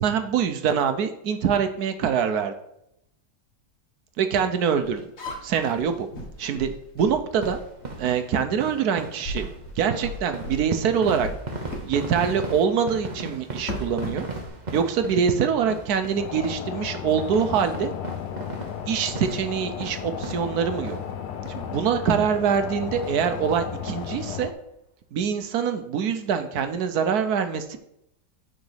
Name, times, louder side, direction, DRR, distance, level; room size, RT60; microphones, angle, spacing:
voice 1, 0.0-2.5 4.2-5.0 5.4-6.1 6.4-6.7 7.0-7.6 8.0-9.4 9.8-11.3 11.8-14.2 14.7-17.9 18.9-21.0 21.5-24.5 25.1-27.8, right 7 dB, 70° right, 8 dB, 1.2 m, -24 dB
sound 1, 4.8-8.1 8.7-8.9 9.2-11.9 12.2-12.4 13.4-14.5, left 1 dB, 40° left, 1.5 m, -37 dB
sound 2, 7.3-21.2 21.5-21.6 22.0-22.2 22.5-22.7 23.0-24.0 24.4-24.5 24.7-24.8, right 2 dB, 30° right, 0.9 m, -37 dB
sound 3, 16.2-24.5, left 8 dB, 75° left, 1.2 m, -34 dB
6.6 x 4.0 x 6.3 m, 0.78 s
omnidirectional pair, 1.8 m